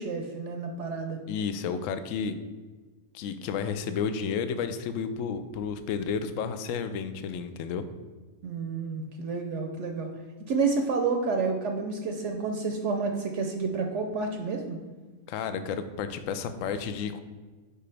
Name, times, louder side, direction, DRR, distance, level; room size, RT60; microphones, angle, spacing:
voice 1, 0.0-1.2 8.4-10.1 10.5-14.8, right 4 dB, 65° right, 4 dB, 0.9 m, -29 dB
voice 2, 1.3-2.4 3.1-7.8 15.3-17.2, left 6 dB, 70° left, 10 dB, 0.9 m, -31 dB
6.7 x 5.0 x 3.3 m, 1.3 s
omnidirectional pair, 1.5 m